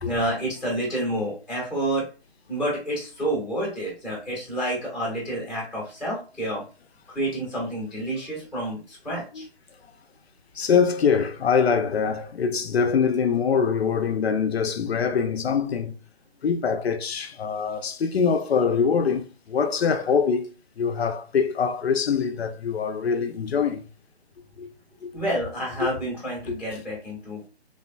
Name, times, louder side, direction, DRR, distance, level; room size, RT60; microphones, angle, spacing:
voice 1, 0.0-2.1 2.5-6.6 7.1-9.5 25.1-27.5, right 1 dB, ahead, 0.6 m, -29 dB
voice 2, 10.5-15.9 16.4-23.9 24.6-24.7 25.0-25.1 26.5-26.6, left 6 dB, 70° left, 0.5 m, -24 dB
3.2 x 2.2 x 2.2 m
figure-of-eight pair, 150°, 33 cm